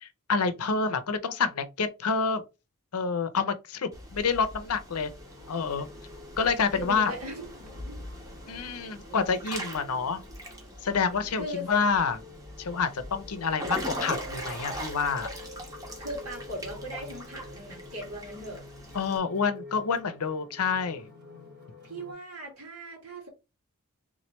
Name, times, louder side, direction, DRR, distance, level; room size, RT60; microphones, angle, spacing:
voice 1, 0.0-2.4 2.9-5.1 5.5-5.9 6.4-7.1 8.5-10.2 10.8-12.2 12.6-15.3 18.9-21.1, left 5 dB, 85° left, 0.6 m, -28 dB
Water / Splash splatter / Drip, 3.9-19.2, equal, 15° right, 1.2 m, -41 dB
sound 1, 5.2-22.1, left 2 dB, 50° right, 2.5 m, -48 dB
voice 2, 6.7-8.0 9.1-9.2 11.3-11.7 16.0-18.6 21.8-23.3, equal, 80° right, 2.5 m, -39 dB
3.7 x 3.1 x 3.0 m
head